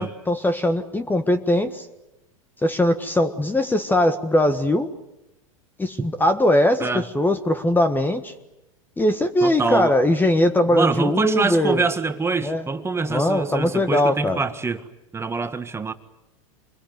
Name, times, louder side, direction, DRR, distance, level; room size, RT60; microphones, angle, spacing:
voice 1, 0.0-1.9 2.6-4.9 5.8-8.3 9.0-11.8 12.4-12.7 13.1-14.4, left 1 dB, 10° left, 1.5 m, -20 dB
voice 2, 9.4-9.9 10.7-14.8 15.1-15.9, right 4 dB, 15° right, 1.8 m, -25 dB
26.5 x 21.5 x 9.5 m
hypercardioid pair, 100°, 18 cm